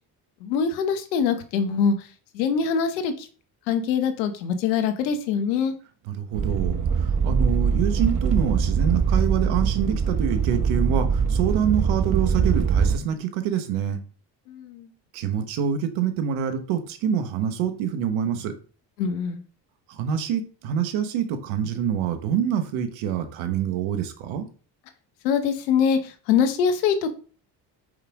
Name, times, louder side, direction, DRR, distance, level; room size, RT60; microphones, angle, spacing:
voice 1, 0.4-1.9 2.3-3.3 3.7-5.7 14.5-14.9 19.0-19.4 25.2-27.1, left 6 dB, 90° left, 9 dB, 1.0 m, -23 dB
voice 2, 6.0-14.0 15.1-18.5 19.9-24.5, right 8 dB, 75° right, 8 dB, 1.2 m, -26 dB
sound 1, 6.3-13.0, right 6 dB, 40° right, 0.9 m, -22 dB
5.5 x 5.1 x 3.6 m, 0.39 s
hypercardioid pair, 60°, 49 cm